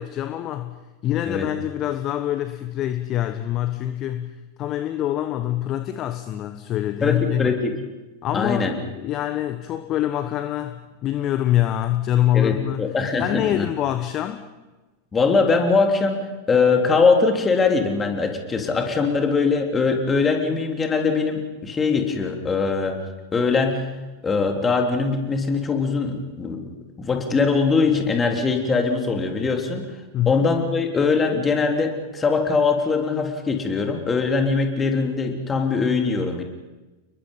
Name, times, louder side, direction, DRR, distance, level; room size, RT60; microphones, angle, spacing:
voice 1, 0.0-7.5 8.2-14.4 30.1-30.5, left 12 dB, 35° left, 9 dB, 1.2 m, -25 dB
voice 2, 7.0-7.7 8.3-8.7 12.3-13.7 15.1-16.2 16.5-23.0 23.3-23.9 24.2-26.6 27.0-29.9 30.3-36.4, left 4 dB, 20° left, 3 dB, 3.6 m, -21 dB
30.0 x 21.5 x 5.6 m, 1.2 s
figure-of-eight pair, 90°, 0 cm